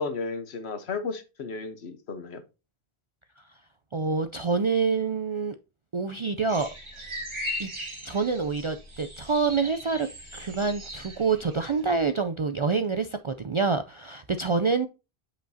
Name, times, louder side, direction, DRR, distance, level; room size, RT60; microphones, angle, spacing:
voice 1, 0.0-2.4, left 4 dB, 90° left, 1.3 m, -33 dB
voice 2, 3.9-5.6 5.9-6.7 7.6-7.7 8.0-10.1 10.3-14.9, right 4 dB, 55° right, 0.3 m, -26 dB
sound 1, 6.5-12.0, equal, 25° right, 1.7 m, -39 dB
7.9 x 5.2 x 2.7 m
omnidirectional pair, 1.1 m